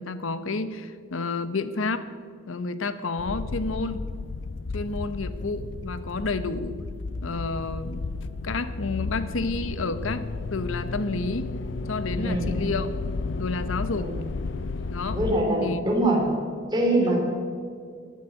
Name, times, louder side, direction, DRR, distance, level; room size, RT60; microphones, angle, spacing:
voice 1, 0.0-2.1 2.5-4.1 4.7-6.8 7.2-8.0 8.4-10.2 10.5-11.5 11.9-12.9 13.4-14.1 14.9-15.2 15.6-15.8 17.0-17.2, left 3 dB, 85° left, 13 dB, 0.9 m, -30 dB
sound 1, 3.2-15.4, left 3 dB, 65° left, 0.5 m, -33 dB
voice 2, 12.1-12.5 13.9-14.2 15.1-16.2 16.7-17.2, right 1 dB, 20° right, -1 dB, 3.3 m, -23 dB
14.0 x 9.6 x 7.8 m, 2.2 s
head